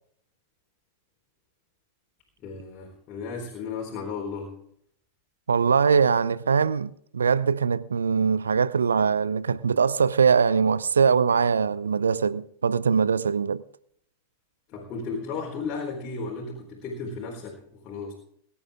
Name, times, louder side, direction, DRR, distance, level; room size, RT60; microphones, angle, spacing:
voice 1, 2.4-4.6 14.7-18.1, left 4 dB, 35° left, 4.1 m, -34 dB
voice 2, 5.5-13.6, right 6 dB, 70° right, 0.5 m, -22 dB
22.0 x 11.0 x 3.7 m
figure-of-eight pair, 90°, 0 cm